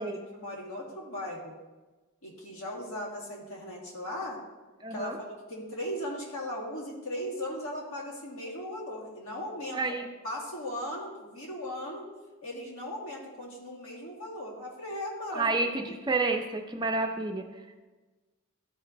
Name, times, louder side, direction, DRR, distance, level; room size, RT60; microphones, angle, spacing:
voice 1, 0.0-1.5 2.2-4.4 4.9-9.8 10.2-12.1 12.4-16.0, left 1 dB, 75° left, -3 dB, 2.3 m, -38 dB
voice 2, 4.8-5.2 9.7-10.1 15.3-17.5, right 3 dB, 20° right, 4 dB, 0.5 m, -29 dB
13.0 x 4.3 x 3.9 m, 1.2 s
head